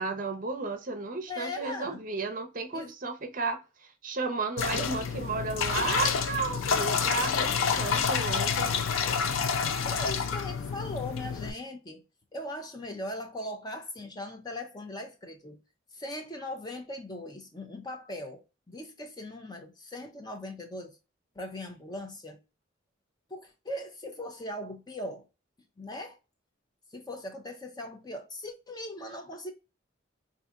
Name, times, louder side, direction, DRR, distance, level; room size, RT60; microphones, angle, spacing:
voice 1, 0.0-8.7, right 4 dB, 40° right, 0.6 m, -33 dB
voice 2, 1.3-2.0 2.7-2.9 9.6-12.0 12.3-15.6 15.9-21.0 21.4-22.4 23.3-25.3 25.8-26.2 26.9-29.5, left 1 dB, 20° left, 0.5 m, -39 dB
sound 1, 4.6-11.5, left 6 dB, 85° left, 0.5 m, -28 dB
4.0 x 2.5 x 2.3 m
head